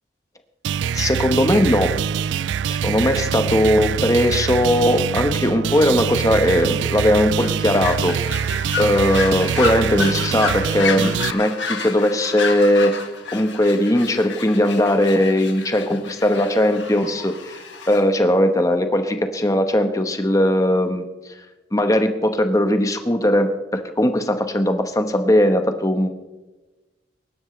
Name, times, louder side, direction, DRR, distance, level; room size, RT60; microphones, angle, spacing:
sound 1, 0.6-11.3, right 8 dB, 80° right, 0.3 m, -24 dB
voice 1, 0.9-1.9 2.4-8.5 8.8-13.0 13.3-17.6 17.9-21.1 21.7-26.1, left 1 dB, 20° left, 7 dB, 1.1 m, -19 dB
sound 2, 7.4-18.0, left 5 dB, 85° left, 1.9 m, -31 dB
23.0 x 12.0 x 3.3 m, 1.1 s
head